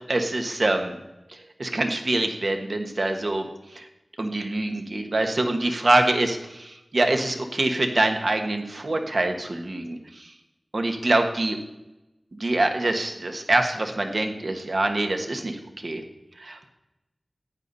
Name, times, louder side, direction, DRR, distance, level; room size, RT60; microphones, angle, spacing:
voice 1, 0.1-0.9 1.3-3.5 3.7-3.9 4.2-10.3 10.7-11.6 12.3-16.0 16.4-16.6, right 2 dB, 55° right, 5 dB, 1.5 m, -25 dB
14.5 x 9.7 x 4.1 m, 0.97 s
wide cardioid pair, 65°, 0 cm